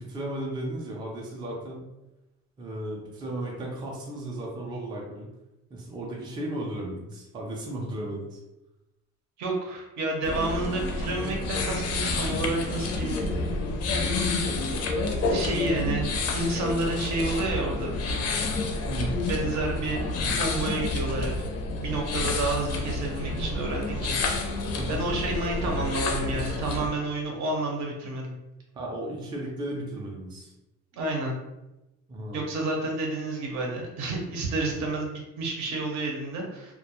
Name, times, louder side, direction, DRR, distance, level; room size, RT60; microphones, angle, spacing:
voice 1, 0.0-1.8 2.6-5.3 5.7-8.4 18.9-19.2 24.8-25.1 28.7-30.5 32.1-32.4, right 1 dB, 15° right, -2 dB, 0.3 m, -35 dB
voice 2, 9.4-13.3 14.7-14.8 15.3-17.9 18.4-18.7 19.2-20.0 20.4-21.3 21.8-24.2 24.9-28.4 30.9-31.4 32.3-36.7, right 2 dB, 70° right, 1 dB, 0.7 m, -30 dB
sound 1, 10.2-26.9, left 2 dB, 55° left, 0.4 m, -29 dB
2.2 x 2.1 x 2.9 m, 0.96 s
cardioid pair, 175°, 29 cm